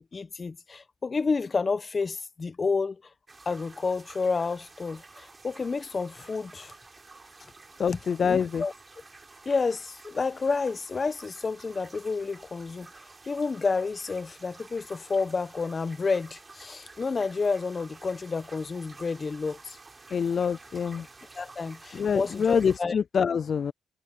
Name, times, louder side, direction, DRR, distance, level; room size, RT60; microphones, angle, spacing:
voice 1, 0.0-3.0 3.4-6.7 8.2-8.7 9.4-12.9 13.3-19.8 21.3-22.9, left 4 dB, 35° left, 1.2 m, -30 dB
sound 1, 3.3-22.8, right 3 dB, 25° right, 4.6 m, -51 dB
voice 2, 7.8-8.6 20.1-21.1 21.9-23.7, left 6 dB, 50° left, 0.3 m, -25 dB
cardioid pair, 90°, 0 cm